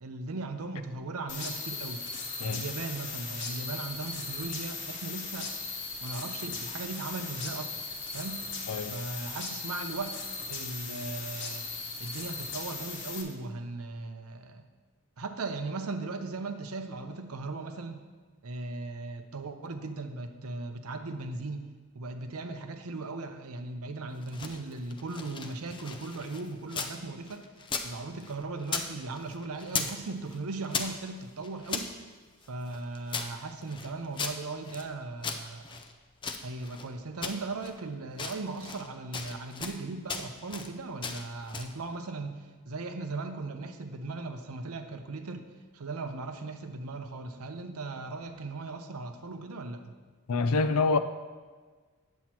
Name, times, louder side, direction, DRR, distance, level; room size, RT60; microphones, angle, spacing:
voice 1, 0.0-2.0 2.4-5.5 6.0-7.8 8.1-8.4 8.9-10.2 10.5-11.7 12.0-14.6 15.2-18.0 18.4-27.5 27.8-31.9 32.5-35.8 36.4-45.5 45.7-49.9, right 3 dB, 90° right, 7 dB, 0.7 m, -38 dB
sound 1, 1.3-13.2, left 4 dB, 55° left, 1.1 m, -38 dB
voice 2, 8.7-9.0 50.3-51.0, left 3 dB, 90° left, 10 dB, 0.4 m, -26 dB
sound 2, 24.1-27.0 27.3-28.9 29.2-30.0 30.3-31.9 32.4-34.9 35.2-36.9 37.2-37.8 38.1-38.9 39.1-39.8 40.1-40.7 41.0-41.8, left 5 dB, 20° left, 0.4 m, -37 dB
9.2 x 7.3 x 2.9 m, 1.4 s
head